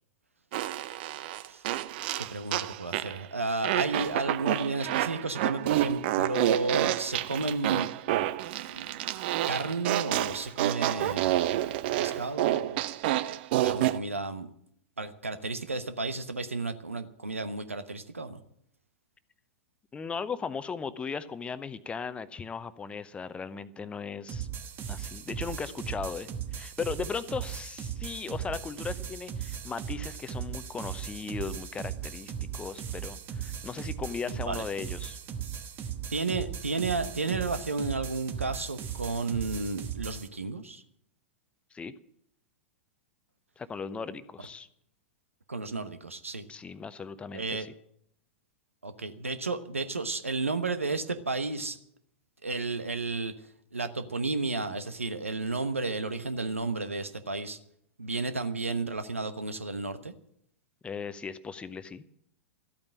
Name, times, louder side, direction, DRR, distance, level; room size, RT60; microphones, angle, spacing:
Fart, 0.5-3.2 3.6-14.0, right 14 dB, 50° right, 0.6 m, -29 dB
voice 1, 2.2-7.9 8.7-9.1 9.5-12.8 13.6-14.5 15.0-18.4 34.3-34.7 36.1-40.8 45.5-46.5 47.3-47.7 48.8-51.8 52.4-57.6 58.0-60.1, right 3 dB, 85° right, 11 dB, 1.1 m, -32 dB
voice 2, 19.9-24.5 24.9-35.2 41.7-41.9 43.6-44.7 46.5-47.7 60.8-62.0, left 5 dB, 15° left, 14 dB, 0.8 m, -37 dB
sound 1, 24.3-40.3, right 8 dB, 30° right, 1.4 m, -38 dB
13.5 x 8.8 x 8.9 m, 0.70 s
figure-of-eight pair, 100°, 7 cm